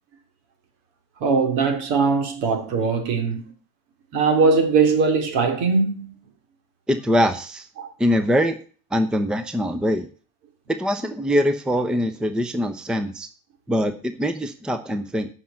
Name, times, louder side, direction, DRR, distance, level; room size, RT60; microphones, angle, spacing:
voice 1, 1.2-3.5 4.1-6.2 7.8-7.9, right 4 dB, 65° right, 3.1 m, -20 dB
voice 2, 6.9-7.7 8.0-8.6 8.9-10.1 10.7-13.3 13.7-15.3, equal, ahead, 0.7 m, -23 dB
8.3 x 5.9 x 7.5 m
supercardioid pair, 125°, 43 cm